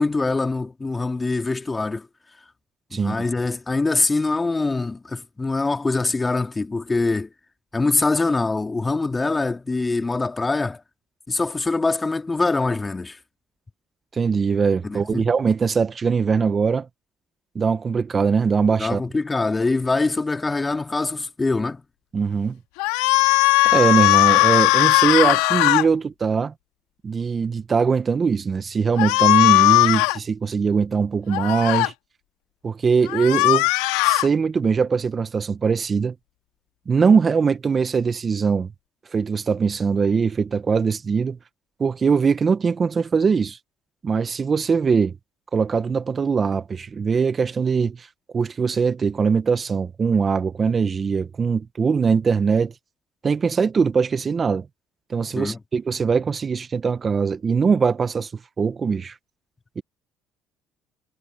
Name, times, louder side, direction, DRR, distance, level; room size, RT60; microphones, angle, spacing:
voice 1, 0.0-2.1 2.9-7.3 7.7-10.8 11.3-13.2 14.8-15.3 18.8-21.8 55.4-55.6, left 3 dB, 20° left, 2.7 m, -23 dB
voice 2, 2.9-3.2 14.1-16.9 17.5-19.0 22.1-22.6 23.3-23.4 23.6-26.5 27.0-31.9 32.6-33.7 34.0-36.1 36.9-38.7 39.1-41.4 41.8-43.6 44.0-45.1 45.5-48.1 48.3-52.7 53.2-54.6 55.1-58.3 58.6-59.1 59.8-59.9, right 5 dB, 35° right, 1.5 m, -21 dB
sound 1, 22.8-25.9 29.0-30.2 31.3-31.9 33.1-34.3, left 22 dB, 85° left, 2.4 m, -18 dB
supercardioid pair, 75°, 0 cm